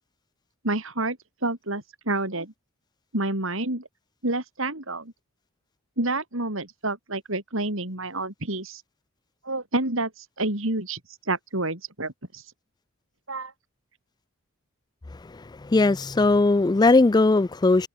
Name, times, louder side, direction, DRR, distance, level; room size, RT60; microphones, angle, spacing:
voice 1, 0.6-1.2 1.4-2.5 3.1-3.9 4.2-5.1 6.0-8.8 9.4-11.0 11.3-12.4 13.3-13.5, right 2 dB, 65° right, 5.1 m, -28 dB
voice 2, 15.3-17.9, left 3 dB, 20° left, 0.3 m, -19 dB
head